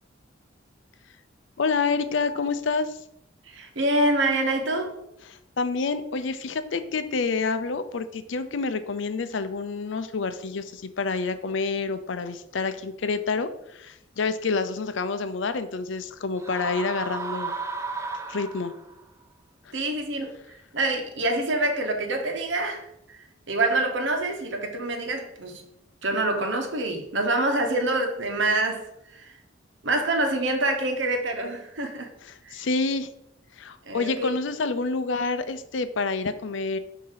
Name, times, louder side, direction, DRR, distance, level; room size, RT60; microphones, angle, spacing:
voice 1, 1.6-3.0 5.3-17.6 18.3-18.7 19.7-19.8 32.2-33.1 33.6-36.8, left 4 dB, 70° left, 0.5 m, -28 dB
voice 2, 3.5-5.0 19.7-20.4 20.7-23.2 23.5-25.6 26.0-29.3 29.8-32.1 32.4-32.6 33.9-34.3, right 2 dB, 70° right, 1.0 m, -26 dB
sound 1, 16.4-19.0, right 4 dB, 15° right, 0.3 m, -34 dB
6.5 x 2.8 x 5.7 m
head